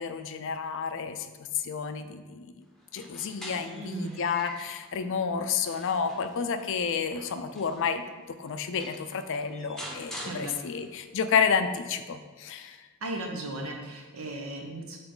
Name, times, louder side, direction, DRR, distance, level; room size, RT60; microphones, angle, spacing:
voice 1, 0.0-2.6 2.9-8.0 8.4-12.8, left 6 dB, 60° left, 10 dB, 0.4 m, -30 dB
sound 1, 2.8-4.9 5.4-8.0 8.5-8.6 8.8-11.0, equal, ahead, 0.9 m, -45 dB
voice 2, 3.7-4.2 10.2-10.6 13.0-15.0, right 1 dB, 70° right, 1 dB, 1.0 m, -36 dB
7.0 x 4.1 x 3.8 m, 1.4 s
head